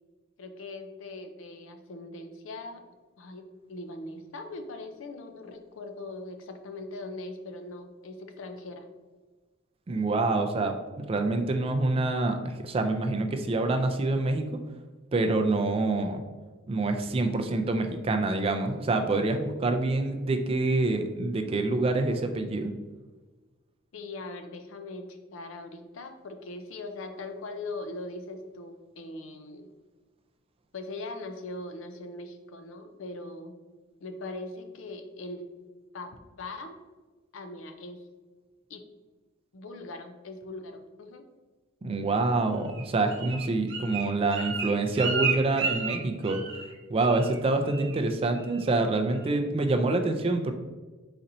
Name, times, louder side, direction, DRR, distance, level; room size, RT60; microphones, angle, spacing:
voice 1, 0.4-2.8 3.2-8.9 23.9-29.7 30.7-33.6 34.0-35.5 35.9-36.7 37.3-38.1 38.7-38.8 39.5-41.2 43.2-43.3, left 2 dB, 70° left, 7 dB, 0.5 m, -40 dB
voice 2, 9.9-14.6 15.1-16.2 16.7-22.7 41.8-46.4 46.9-50.5, right 2 dB, 25° right, 5 dB, 0.3 m, -26 dB
Bird, 42.7-46.7 47.0-47.4 47.7-48.0 48.3-48.7 49.1-49.2, right 5 dB, 60° right, 0.8 m, -32 dB
4.2 x 4.1 x 2.6 m, 1.3 s
head